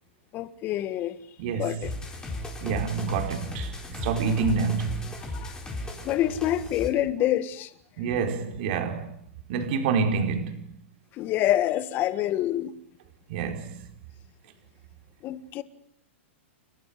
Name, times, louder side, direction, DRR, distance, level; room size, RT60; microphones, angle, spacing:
voice 1, 0.3-1.2 1.6-1.9 5.3-5.5 6.0-7.7 11.2-12.7 15.2-15.6, left 12 dB, 30° left, 1.6 m, -26 dB
voice 2, 1.4-1.7 2.6-5.0 8.0-9.1 9.5-10.6 13.3-13.7, right 5 dB, 50° right, 4.6 m, -27 dB
sound 1, 1.8-6.9, left 2 dB, 10° left, 4.5 m, -36 dB
30.0 x 14.5 x 9.5 m
hypercardioid pair, 145°, 7 cm